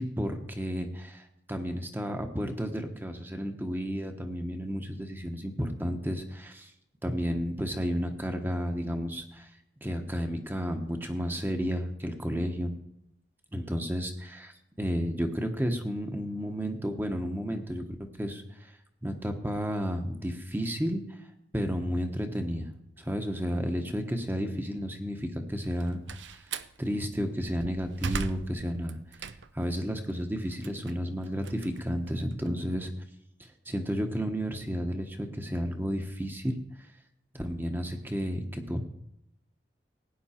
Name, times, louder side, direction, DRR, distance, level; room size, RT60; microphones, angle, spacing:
voice 1, 0.0-6.7 7.0-9.5 9.8-12.8 13.5-17.8 18.2-18.7 19.0-21.0 21.5-26.4 26.8-29.0 29.5-32.9 33.4-36.6 37.3-38.9, equal, 10° right, 6 dB, 1.1 m, -32 dB
Slam, 25.6-26.8 27.3-29.7 30.1-32.5, right 5 dB, 85° right, 0.6 m, -38 dB
16.5 x 9.7 x 4.4 m, 0.80 s
head